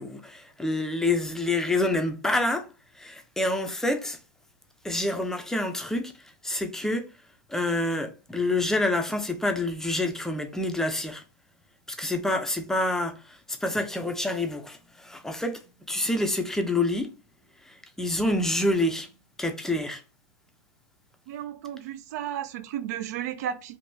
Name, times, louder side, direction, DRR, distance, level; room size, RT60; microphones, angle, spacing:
voice 1, 0.0-2.7 3.0-4.2 4.8-6.1 6.4-7.1 7.5-11.2 11.9-15.6 15.9-17.1 17.7-19.1 19.4-20.0, left 2 dB, 5° left, 0.5 m, -27 dB
voice 2, 21.3-23.8, right 10 dB, 60° right, 0.4 m, -33 dB
3.5 x 2.6 x 2.6 m
hypercardioid pair, 120°, 10 cm